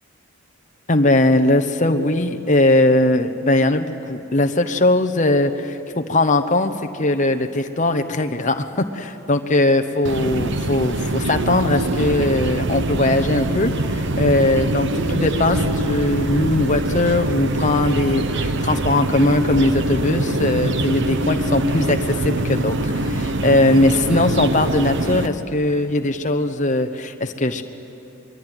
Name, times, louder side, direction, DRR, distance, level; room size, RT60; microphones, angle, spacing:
voice 1, 0.9-8.7 8.9-27.6, left 2 dB, 35° left, 6 dB, 1.0 m, -20 dB
sound 1, 10.1-25.3, right 1 dB, 55° right, 1.0 m, -23 dB
26.0 x 21.5 x 9.2 m, 2.7 s
head